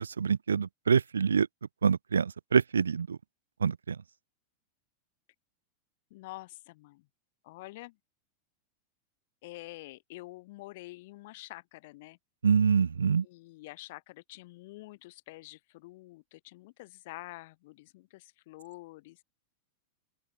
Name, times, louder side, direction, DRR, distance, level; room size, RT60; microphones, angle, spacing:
voice 1, 0.0-1.5 1.8-3.2 3.6-4.0 12.4-13.3, right 6 dB, 70° right, 0.6 m, -26 dB
voice 2, 6.1-7.1 7.4-8.0 9.4-12.2 13.2-19.2, left 20 dB, 50° left, 6.9 m, -47 dB
open air
figure-of-eight pair, 90°, 0 cm